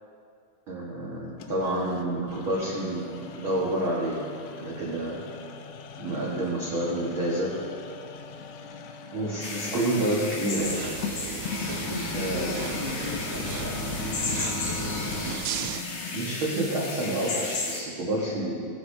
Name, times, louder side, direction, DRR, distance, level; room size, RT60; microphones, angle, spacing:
voice 1, 0.7-4.3 4.6-5.2 6.0-7.6 9.1-10.8 12.1-12.7 15.2-15.4 16.1-18.7, right 1 dB, 55° right, -6 dB, 1.5 m, -29 dB
sound 1, 1.4-16.4, left 6 dB, 80° left, 2.1 m, -39 dB
voice 2, 5.9-6.3 11.7-15.2, left 1 dB, 30° right, -9 dB, 1.8 m, -38 dB
sound 2, 9.4-17.8, left 3 dB, 65° left, 1.5 m, -34 dB
sound 3, 10.6-15.8, right 9 dB, 80° right, 2.2 m, -36 dB
20.0 x 9.8 x 2.7 m, 2.4 s
omnidirectional pair, 4.6 m